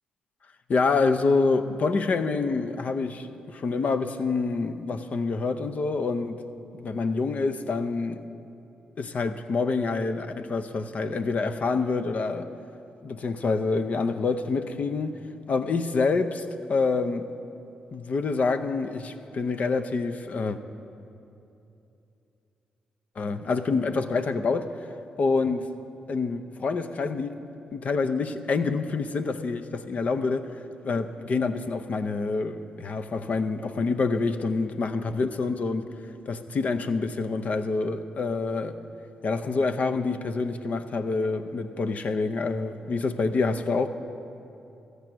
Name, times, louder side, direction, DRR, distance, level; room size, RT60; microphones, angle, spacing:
voice 1, 0.7-6.4 6.7-8.2 9.0-12.5 13.0-15.2 15.5-17.3 17.9-20.6 23.2-24.9 25.2-25.6 26.1-27.4 27.7-30.5 30.8-35.9 36.3-38.8 39.2-43.9, left 4 dB, 55° left, 10 dB, 0.7 m, -27 dB
14.0 x 8.2 x 6.1 m, 2.8 s
hypercardioid pair, 45°, 3 cm